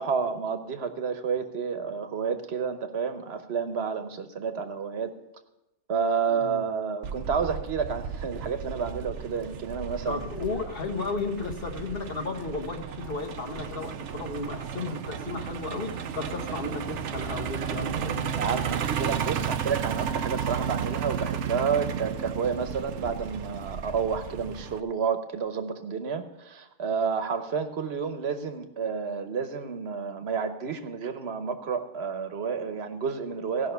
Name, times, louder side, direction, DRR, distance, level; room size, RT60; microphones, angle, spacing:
voice 1, 0.0-5.1 5.9-10.2 17.7-18.0 18.4-33.7, right 6 dB, 65° right, 9 dB, 1.2 m, -30 dB
voice 2, 6.3-6.7 10.1-18.3, left 3 dB, 55° left, 3 dB, 1.4 m, -34 dB
Truck, 7.0-24.8, right 8 dB, 85° right, 1.0 m, -33 dB
16.5 x 5.9 x 6.8 m, 0.93 s
omnidirectional pair, 1.2 m